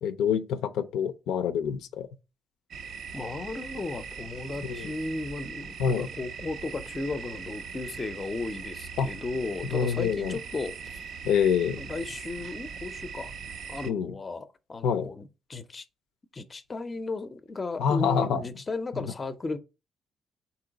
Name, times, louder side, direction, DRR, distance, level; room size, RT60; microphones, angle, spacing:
voice 1, 0.0-2.1 4.6-4.9 5.8-6.1 9.0-9.1 9.7-10.4 11.2-11.8 13.9-14.1 14.8-15.1 17.8-18.4, left 7 dB, 85° left, 0.4 m, -26 dB
sound 1, 2.7-13.9, right 6 dB, 65° right, 0.3 m, -40 dB
voice 2, 3.1-11.1 11.8-13.3 13.7-15.8 16.3-19.6, left 3 dB, 30° left, 0.5 m, -35 dB
3.8 x 2.8 x 3.8 m
cardioid pair, 90°, 0 cm